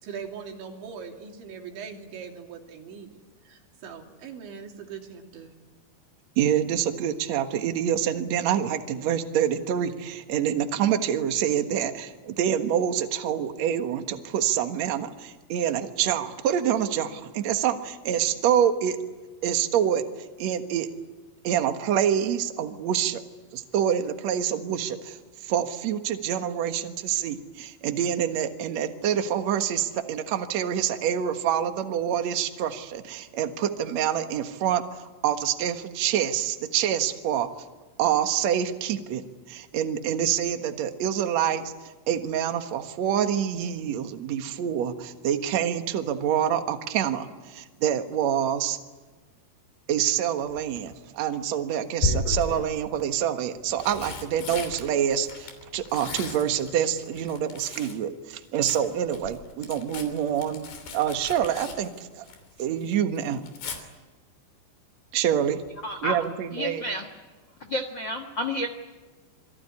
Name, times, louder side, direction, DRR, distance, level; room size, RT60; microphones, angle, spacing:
voice 1, 0.0-5.6, right 6 dB, 85° right, 2 dB, 5.2 m, -41 dB
voice 2, 6.4-19.0 19.4-20.0 20.4-20.9 21.4-23.2 23.5-25.2 25.4-37.5 38.0-39.2 39.5-41.7 42.1-48.8 49.9-62.3 62.6-63.4 65.1-65.6 66.0-66.8, right 9 dB, 60° right, 7 dB, 1.9 m, -26 dB
Tearing, 50.5-51.0 52.0-52.7 53.5-58.0 58.3-62.6 62.9-63.8 65.6-65.9 66.2-66.3, left 4 dB, 65° left, 5.2 m, -35 dB
voice 3, 65.8-66.2 66.5-67.1 67.6-68.7, equal, 85° left, 6 dB, 1.0 m, -30 dB
27.5 x 22.0 x 9.8 m, 1.3 s
omnidirectional pair, 5.1 m